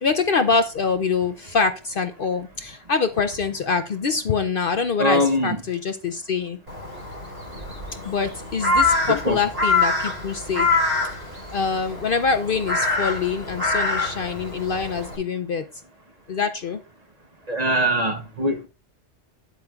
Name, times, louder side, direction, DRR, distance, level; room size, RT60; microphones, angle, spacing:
voice 1, 0.0-6.6 8.0-10.7 11.5-15.6 16.3-16.8, left 5 dB, 55° left, 0.7 m, -24 dB
voice 2, 5.0-5.6 9.2-9.4 17.5-18.7, equal, 35° right, 0.9 m, -22 dB
Crow, 6.7-15.2, left 3 dB, 55° right, 3.5 m, -25 dB
9.3 x 8.0 x 2.4 m
omnidirectional pair, 1.3 m